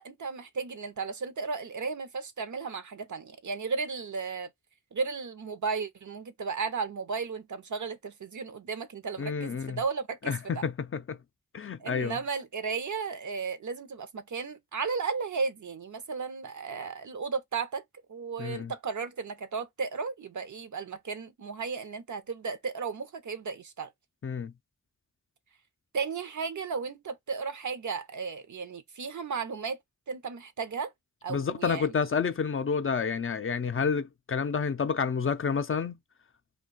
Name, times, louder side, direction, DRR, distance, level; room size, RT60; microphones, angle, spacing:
voice 1, 0.0-4.5 4.9-10.6 11.8-17.8 18.1-23.9 25.9-29.8 30.1-30.9 31.2-31.9, right 5 dB, 65° right, 0.6 m, -34 dB
voice 2, 9.2-9.8 10.3-11.2 11.5-12.2 18.4-18.7 24.2-24.5 31.3-36.0, left 6 dB, 45° left, 0.4 m, -29 dB
2.4 x 2.3 x 3.7 m
cardioid pair, 50°, 31 cm